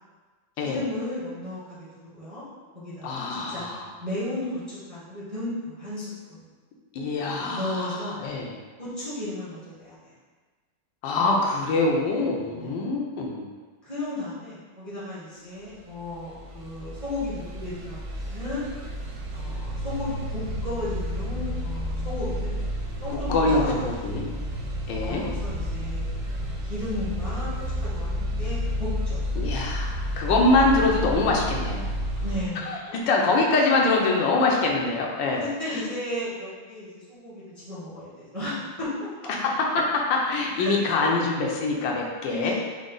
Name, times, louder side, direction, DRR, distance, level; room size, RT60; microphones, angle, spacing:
voice 1, 0.6-2.4 2.7-6.4 7.5-8.2 8.8-10.1 12.5-12.7 13.8-18.7 19.3-22.6 23.0-24.2 25.0-27.5 27.8-29.2 32.2-32.8 35.3-39.3 40.5-41.1 42.2-42.5, left 1 dB, 25° right, -10 dB, 0.8 m, -34 dB
voice 2, 3.0-3.9 6.9-8.5 11.0-13.5 23.1-24.2 24.9-25.2 29.4-31.9 32.7-35.4 35.7-35.8 39.3-42.5, left 3 dB, 80° left, -1 dB, 1.3 m, -24 dB
sound 1, 16.0-32.5, equal, 70° right, 1.1 m, -31 dB
4.9 x 2.1 x 3.7 m, 1.4 s
omnidirectional pair, 2.0 m